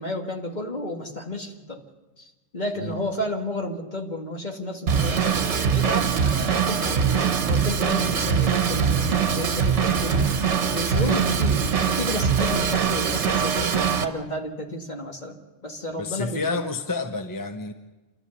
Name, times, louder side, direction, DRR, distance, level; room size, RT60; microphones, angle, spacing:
voice 1, 0.0-1.8 2.2-10.3 10.7-16.7, left 1 dB, 35° left, 2 dB, 1.8 m, -32 dB
Drum kit / Drum, 4.9-14.0, right 6 dB, 65° right, 1.3 m, -22 dB
voice 2, 10.9-11.2 15.9-17.7, left 3 dB, 20° left, 7 dB, 0.6 m, -30 dB
28.5 x 13.5 x 6.9 m, 1.2 s
omnidirectional pair, 1.3 m